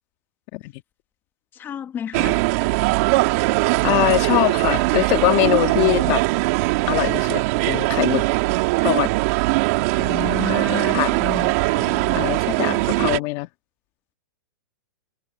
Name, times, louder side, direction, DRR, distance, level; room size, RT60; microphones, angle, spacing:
voice 1, 1.6-2.4 9.9-12.3, left 9 dB, 20° left, 2.0 m, -31 dB
sound 1, 2.1-13.2, right 23 dB, 45° right, 3.4 m, -21 dB
voice 2, 3.8-6.2 6.9-8.3 8.8-9.1 10.9-11.1 12.1-13.5, left 22 dB, 40° left, 1.8 m, -22 dB
hypercardioid pair, 150°, 11 cm